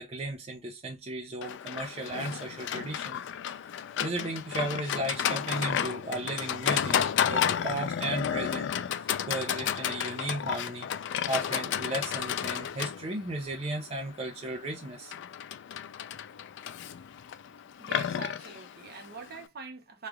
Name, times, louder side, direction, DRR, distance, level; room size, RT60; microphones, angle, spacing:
voice 1, 0.0-3.2 4.0-8.7 9.0-10.9 11.3-15.1, right 2 dB, 30° right, 0.5 m, -35 dB
Livestock farm animals working animals, 1.4-19.4, left 9 dB, 60° left, 0.3 m, -32 dB
voice 2, 17.8-20.1, right 4 dB, 50° right, 0.9 m, -43 dB
3.1 x 2.4 x 3.4 m
head